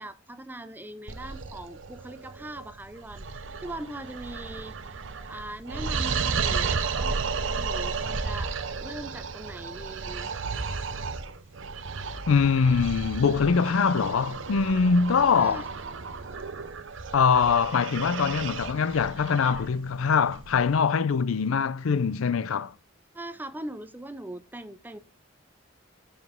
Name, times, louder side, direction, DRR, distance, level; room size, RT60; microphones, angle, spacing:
voice 1, 0.0-4.8 5.3-8.5 8.8-10.5 15.4-15.7 23.1-25.0, right 1 dB, 10° right, 0.5 m, -41 dB
sound 1, 1.1-20.7, right 5 dB, 65° right, 0.8 m, -33 dB
voice 2, 12.3-15.7 17.1-22.7, left 5 dB, 85° left, 0.5 m, -23 dB
7.0 x 6.0 x 3.6 m
head